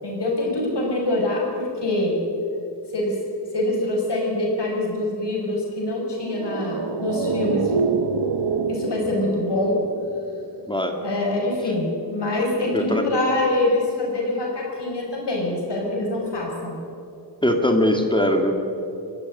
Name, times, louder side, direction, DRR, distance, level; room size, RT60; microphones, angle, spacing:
voice 1, 0.0-2.2 2.9-3.2 3.5-7.7 8.7-9.8 11.0-16.8, left 2 dB, 75° left, -1 dB, 5.7 m, -24 dB
sound 1, 6.1-10.7 10.9-11.0, right 5 dB, 70° right, 1.2 m, -26 dB
voice 2, 17.4-18.6, left 1 dB, 10° left, 4 dB, 2.1 m, -20 dB
24.0 x 12.0 x 9.7 m, 2.7 s
wide cardioid pair, 90°, 42 cm